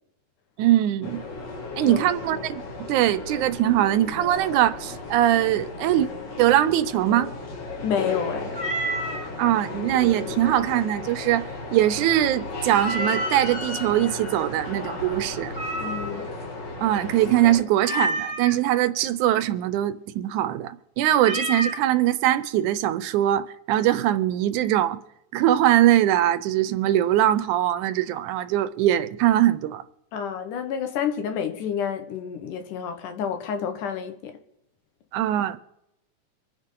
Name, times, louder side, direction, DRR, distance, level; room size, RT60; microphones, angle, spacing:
voice 1, 0.6-1.2 1.8-2.6 2.9-6.1 6.4-7.3 9.4-15.5 16.8-25.0 25.3-29.8 35.1-35.6, right 12 dB, 80° right, 2.1 m, -22 dB
sound 1, 1.0-17.6, left 3 dB, 55° left, 3.5 m, -35 dB
voice 2, 7.8-8.6 15.8-16.3 30.1-34.4, left 8 dB, 80° left, 2.7 m, -29 dB
Meow, 8.5-9.3 12.7-13.5 15.5-16.3 17.8-18.6 21.2-21.8, right 1 dB, 15° right, 1.3 m, -29 dB
25.5 x 9.7 x 3.8 m
omnidirectional pair, 3.6 m